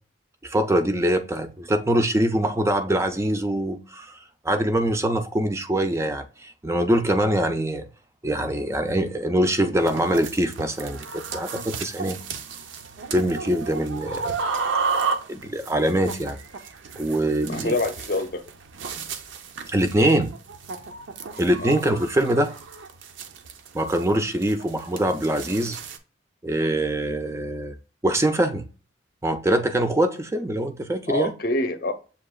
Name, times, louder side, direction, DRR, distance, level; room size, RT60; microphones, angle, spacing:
voice 1, 0.4-4.2 4.4-7.9 8.2-11.1 11.3-12.2 13.1-14.4 14.7-15.0 15.3-16.4 17.0-17.7 19.7-20.3 21.4-22.5 23.7-25.8 26.4-27.7 28.0-28.6 29.2-31.3, right 1 dB, 15° right, 0.3 m, -23 dB
sound 1, 9.8-26.0, right 5 dB, 75° right, 0.5 m, -33 dB
voice 2, 17.5-18.4 21.6-21.8 31.1-31.9, left 2 dB, 50° left, 0.6 m, -26 dB
7.1 x 2.8 x 2.3 m
head